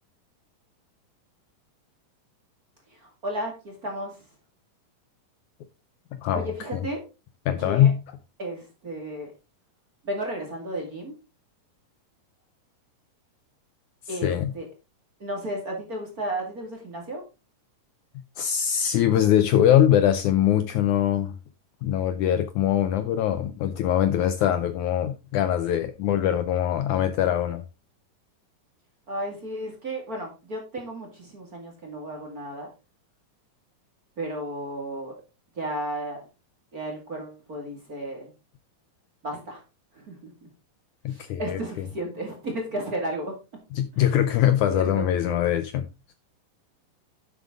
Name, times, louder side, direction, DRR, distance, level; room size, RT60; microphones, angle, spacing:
voice 1, 3.0-4.1 6.3-7.0 7.6-7.9 8.4-9.3 10.0-11.1 14.1-14.6 15.2-17.2 29.1-32.7 34.2-35.1 35.6-36.2 36.7-38.3 39.2-39.6 40.0-40.2 41.1-43.3 44.0-44.1 44.7-45.4, right 1 dB, 30° right, 2.1 m, -33 dB
voice 2, 6.1-6.9 7.5-8.0 14.1-14.5 18.4-21.3 21.8-27.6 41.1-41.9 43.7-45.8, left 10 dB, 75° left, 1.9 m, -23 dB
11.0 x 7.4 x 3.7 m
omnidirectional pair, 4.0 m